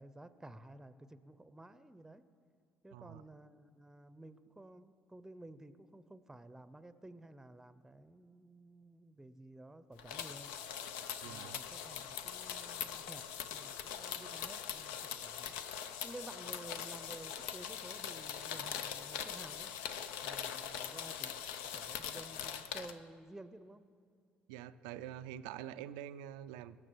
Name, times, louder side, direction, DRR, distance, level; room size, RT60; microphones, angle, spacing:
voice 1, 0.0-2.2 2.8-10.5 11.2-15.6 16.0-19.7 20.2-21.4 21.6-23.8, right 2 dB, 10° right, 13 dB, 0.6 m, -53 dB
sound 1, 10.0-22.9, left 8 dB, 85° left, 0.5 m, -42 dB
voice 2, 11.2-11.6 24.5-26.8, right 11 dB, 90° right, 14 dB, 0.3 m, -46 dB
18.0 x 6.5 x 4.6 m, 2.2 s
supercardioid pair, 70°, 4 cm